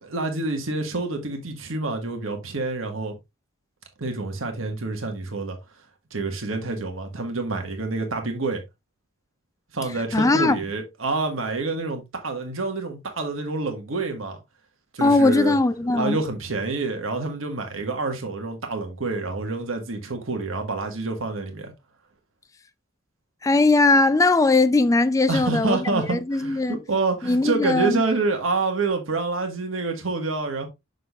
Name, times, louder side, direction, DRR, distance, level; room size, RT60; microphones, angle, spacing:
voice 1, 0.0-3.2 4.0-5.6 6.1-8.6 9.7-14.4 14.9-15.5 15.9-21.7 25.3-30.7, right 3 dB, 85° right, 1.5 m, -27 dB
voice 2, 10.1-10.6 15.0-16.2 23.4-26.8 27.2-28.0, left 2 dB, 15° left, 0.4 m, -19 dB
6.5 x 6.2 x 2.4 m
head